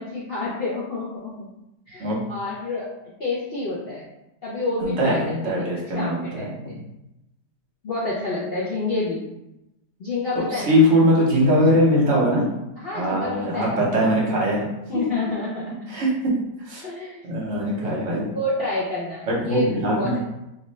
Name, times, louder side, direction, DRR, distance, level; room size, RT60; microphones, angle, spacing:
voice 1, 0.0-1.5 1.9-2.9 3.2-4.1 4.4-6.8 7.8-9.3 10.0-10.7 12.8-13.8 14.9-16.0 16.8-17.2 17.8-19.7 20.0-20.2, left 2 dB, 55° left, -8 dB, 0.6 m, -29 dB
voice 2, 4.8-6.8 10.3-12.5 12.9-14.7 15.9-16.3 16.6-16.8 17.2-18.3 19.3-20.2, equal, 50° right, -4 dB, 1.2 m, -21 dB
3.3 x 2.5 x 3.1 m, 0.90 s
omnidirectional pair, 1.8 m